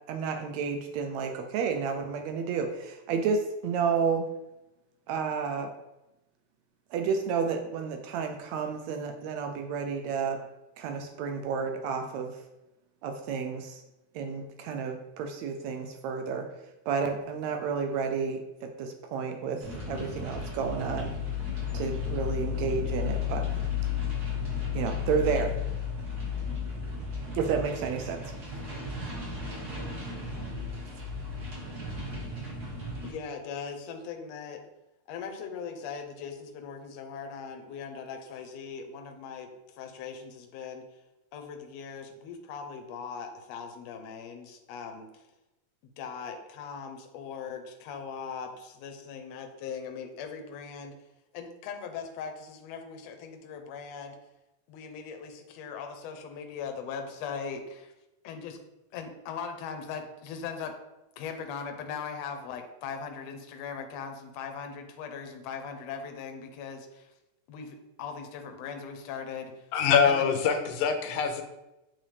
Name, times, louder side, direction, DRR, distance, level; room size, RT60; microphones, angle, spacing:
voice 1, 0.1-4.3 5.1-5.7 6.9-10.4 10.8-12.3 13.0-13.8 14.2-16.5 16.9-21.1 21.7-23.4 24.7-25.6 27.3-28.2 30.6-30.7, right 6 dB, 80° right, 5 dB, 1.7 m, -31 dB
sound 1, 19.6-33.1, left 6 dB, 35° right, 2.0 m, -34 dB
voice 2, 33.0-34.6 35.1-40.8 41.3-45.2 46.0-50.9 51.3-54.2 54.7-57.9 58.2-58.6 58.9-60.7 61.2-67.1 67.5-69.7 70.0-70.3, left 6 dB, 70° left, 5 dB, 1.8 m, -40 dB
voice 3, 69.7-71.4, left 7 dB, 90° left, 6 dB, 2.2 m, -24 dB
8.0 x 3.7 x 3.3 m, 0.95 s
omnidirectional pair, 3.4 m